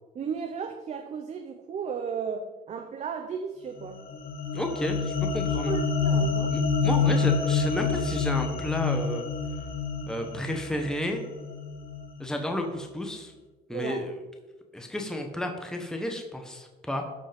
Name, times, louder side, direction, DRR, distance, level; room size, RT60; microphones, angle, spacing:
voice 1, 0.1-4.0 5.3-6.6 13.7-14.1, right 6 dB, 45° right, 0.8 m, -35 dB
sound 1, 3.8-12.2, left 5 dB, 60° left, 1.8 m, -28 dB
voice 2, 4.5-5.7 6.5-9.3 10.1-11.2 12.2-13.3 13.7-14.2 14.7-17.0, left 1 dB, 5° left, 1.3 m, -32 dB
13.0 x 5.3 x 5.3 m
cardioid pair, 110°, 17 cm